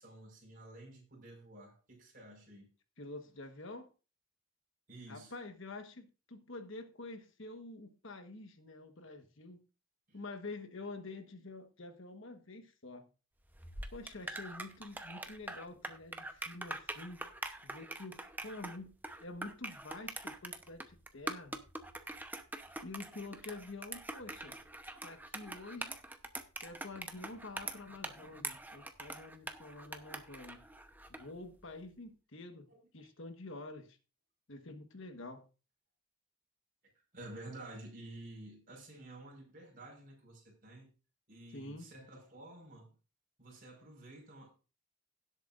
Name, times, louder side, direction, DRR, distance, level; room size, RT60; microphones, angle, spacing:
voice 1, 0.0-2.7 4.9-5.3 10.1-10.2 32.7-32.8 37.1-40.9 41.3-42.9 43.4-44.5, right 2 dB, 40° right, 5.0 m, -51 dB
voice 2, 3.0-3.9 5.1-9.6 10.1-13.1 13.9-17.2 17.6-21.6 22.8-24.6 25.0-26.0 26.6-30.6 31.1-34.0 34.5-35.5 41.5-41.9, left 2 dB, 60° left, 1.3 m, -48 dB
sound 1, 13.5-31.3, right 2 dB, 10° right, 0.8 m, -44 dB
17.5 x 8.1 x 2.5 m
head